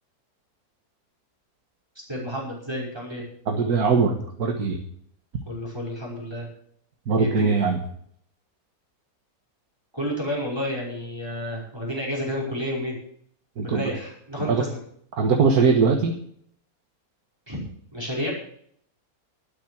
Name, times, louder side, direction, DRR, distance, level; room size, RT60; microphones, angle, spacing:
voice 1, 2.1-3.2 5.5-6.5 7.2-7.5 9.9-13.0 13.6-14.7 17.5-17.6 17.9-18.3, equal, 15° right, -3 dB, 5.4 m, -30 dB
voice 2, 3.5-4.8 7.1-7.8 13.6-13.9 14.4-14.6 15.2-16.1, right 5 dB, 85° right, 3 dB, 1.9 m, -21 dB
12.5 x 9.0 x 7.7 m, 0.65 s
omnidirectional pair, 1.6 m